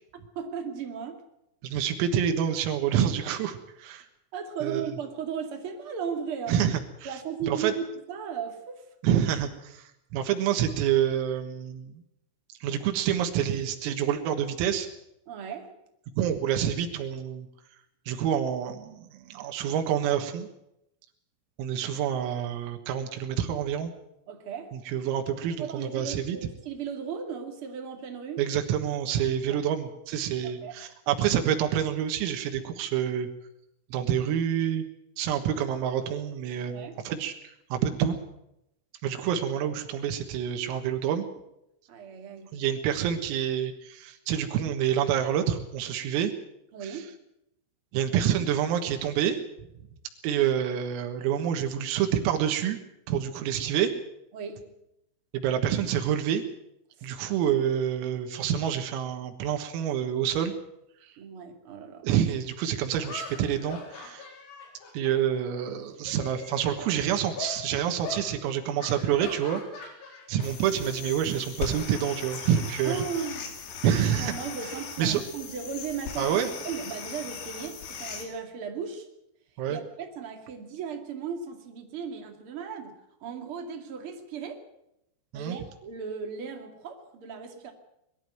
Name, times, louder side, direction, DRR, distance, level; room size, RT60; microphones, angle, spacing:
voice 1, 0.3-1.2 4.3-6.6 7.0-8.8 15.3-15.7 24.3-24.7 25.6-28.5 29.5-29.6 30.4-30.8 36.7-37.0 41.9-42.5 46.7-47.2 54.3-54.7 57.0-57.1 61.2-62.1 72.8-73.5 74.2-76.4 76.6-79.1 79.6-84.6 85.3-87.7, right 6 dB, 45° right, 4 dB, 1.8 m, -36 dB
voice 2, 1.6-4.1 4.6-4.9 6.5-7.1 7.5-7.7 9.0-12.0 12.6-14.9 16.2-17.5 18.1-20.5 21.6-23.9 24.7-26.4 28.4-33.3 33.9-34.9 35.2-37.3 37.7-38.2 39.0-41.3 42.5-46.3 46.9-47.0 47.9-49.4 50.2-52.8 53.1-53.9 55.3-56.4 57.0-60.5 62.0-64.3 64.9-69.9 70.3-73.0 73.8-74.4 75.0-75.2 76.2-76.5 79.6-79.8 85.3-85.6, right 9 dB, 90° right, 5 dB, 4.2 m, -27 dB
sound 1, 62.2-62.3 63.0-65.7 66.0-66.9 67.4-67.6 68.0-68.3 68.8-70.5 70.8-71.1 72.3-73.7, left 4 dB, 90° left, 6.9 m, -41 dB
sound 2, 70.4-78.3, left 6 dB, 65° left, 4.8 m, -39 dB
22.0 x 12.5 x 9.4 m, 0.82 s
omnidirectional pair, 6.0 m